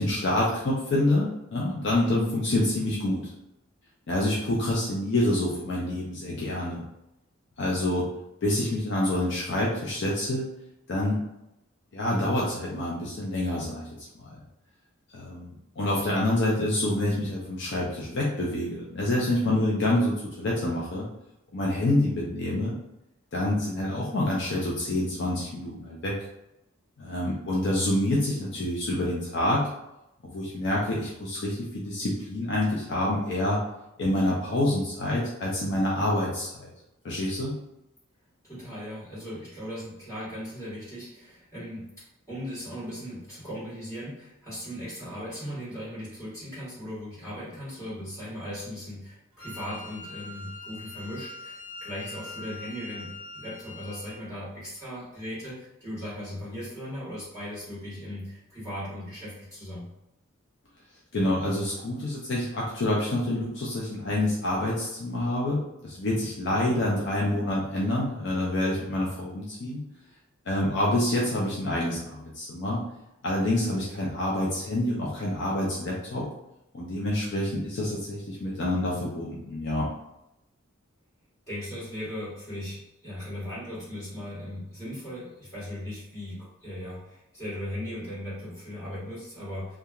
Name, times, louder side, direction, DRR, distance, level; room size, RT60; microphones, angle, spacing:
voice 1, 0.0-3.3 4.1-6.8 7.6-8.0 8.4-10.4 10.9-11.2 11.9-13.9 14.1-14.3 15.1-21.1 21.5-22.7 23.3-26.1 27.0-29.6 30.3-33.6 34.0-36.7 37.0-37.6 61.1-69.8 70.5-72.8 73.2-76.3 76.7-79.9, left 1 dB, 55° left, -4 dB, 0.4 m, -27 dB
voice 2, 38.4-41.9 42.3-59.9 81.5-89.8, equal, 15° left, -11 dB, 1.5 m, -38 dB
Wind instrument woodwind instrument, 49.4-54.2, left 3 dB, 30° right, 1.4 m, -42 dB
2.9 x 2.3 x 2.3 m, 0.88 s
head